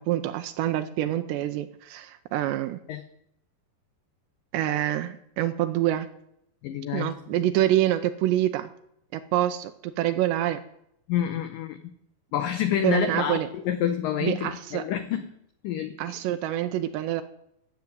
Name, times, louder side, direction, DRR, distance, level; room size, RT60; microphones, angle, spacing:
voice 1, 0.1-2.8 4.5-6.1 6.9-8.7 9.1-10.6 12.8-13.5 14.2-14.8 16.0-17.2, right 13 dB, 85° right, 8 dB, 2.9 m, -26 dB
voice 2, 6.6-7.1 11.1-11.8 12.3-15.3 15.6-15.9, left 10 dB, 80° left, 9 dB, 1.9 m, -28 dB
15.0 x 7.2 x 9.4 m, 0.76 s
omnidirectional pair, 5.0 m